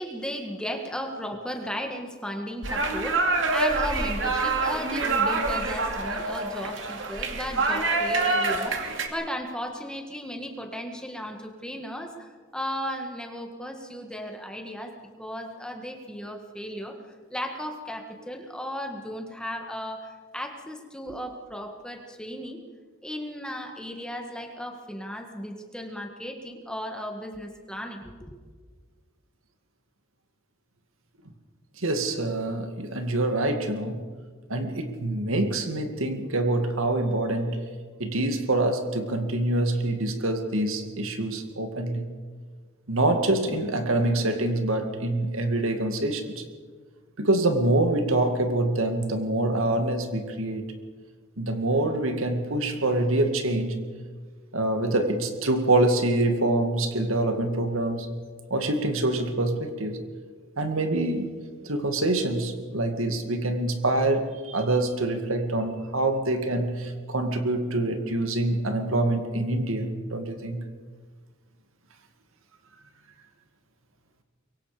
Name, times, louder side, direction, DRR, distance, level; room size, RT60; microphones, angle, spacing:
voice 1, 0.0-14.9 15.2-17.0 17.3-22.6 23.0-28.4, equal, 5° left, 3 dB, 1.8 m, -35 dB
sound 1, 2.6-9.1, right 3 dB, 60° right, 2.6 m, -26 dB
voice 2, 31.8-34.0 34.5-37.6 38.0-42.1 42.9-46.5 47.2-50.7 51.4-53.8 54.5-58.1 58.5-60.0 60.6-61.3 61.6-70.6, right 2 dB, 80° right, 6 dB, 2.3 m, -25 dB
24.5 x 23.0 x 5.2 m, 1.5 s
head